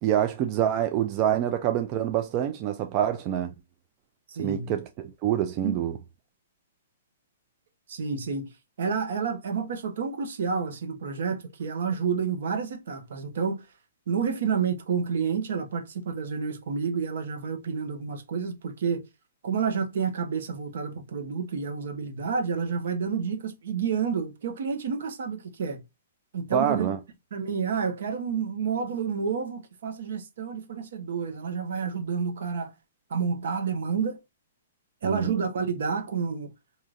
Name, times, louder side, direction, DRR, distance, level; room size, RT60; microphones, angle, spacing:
voice 1, 0.0-3.5 4.4-4.8 5.2-5.9 26.5-27.0 35.0-35.3, right 10 dB, 30° right, 0.3 m, -26 dB
voice 2, 4.3-4.7 5.6-5.8 7.9-8.5 8.8-13.6 14.1-19.0 19.4-25.8 26.3-26.9 27.3-32.7 33.1-34.2 35.0-36.5, right 6 dB, 65° right, 1.1 m, -29 dB
4.8 x 2.7 x 2.6 m
hypercardioid pair, 160°, 0 cm